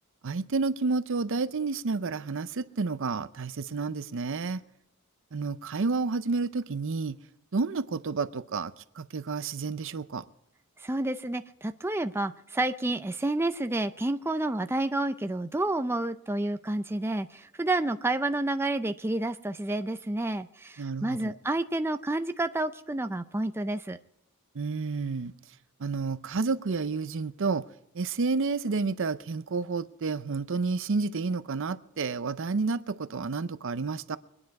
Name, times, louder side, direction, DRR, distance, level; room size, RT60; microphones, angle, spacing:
voice 1, 0.2-4.6 5.3-7.2 7.5-10.2 20.8-21.3 24.5-25.3 25.8-27.7 27.9-34.2, right 4 dB, 65° right, 0.6 m, -30 dB
voice 2, 10.8-24.0, right 2 dB, 10° right, 0.4 m, -29 dB
23.5 x 9.9 x 4.7 m
head